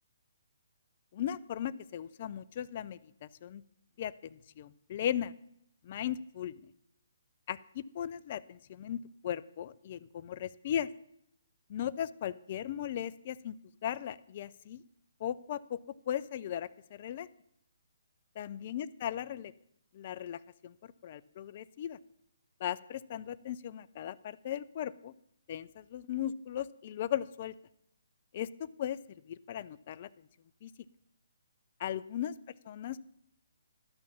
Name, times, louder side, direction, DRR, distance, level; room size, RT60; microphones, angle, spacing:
voice 1, 1.1-3.6 4.0-5.3 5.8-6.6 7.5-10.9 11.7-13.6 13.8-14.8 15.2-15.8 16.1-17.3 18.4-19.5 19.9-22.0 22.6-25.1 25.5-27.5 28.3-29.0 29.3-30.1 30.6-30.7 31.8-32.3 32.7-33.0, left 10 dB, 40° left, 17 dB, 0.4 m, -37 dB
11.0 x 6.1 x 6.9 m, 0.75 s
figure-of-eight pair, 140°, 0 cm